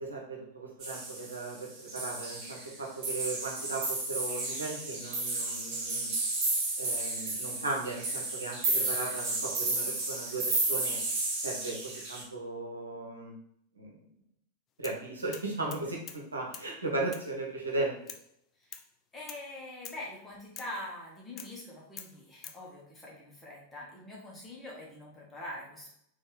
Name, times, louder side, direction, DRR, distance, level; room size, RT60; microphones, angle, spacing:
voice 1, 0.0-6.1 6.8-11.0 11.4-13.3 13.7-13.9 14.8-17.9, right 2 dB, 75° right, -1 dB, 1.1 m, -37 dB
sound 1, 0.8-1.5 1.9-2.7 3.0-12.2, right 2 dB, 40° right, 1.5 m, -33 dB
sound 2, 14.8-15.0 15.3-16.2 16.5-16.7 17.1-17.3 18.1-18.3 18.7-18.9 19.3-19.5 19.9-20.1 20.6-20.8 21.4-21.6 22.0-22.6, left 8 dB, 30° left, 0.4 m, -46 dB
voice 2, 19.1-25.9, left 1 dB, 15° left, -4 dB, 1.7 m, -44 dB
4.1 x 3.1 x 3.8 m, 0.71 s
figure-of-eight pair, 90°, 0 cm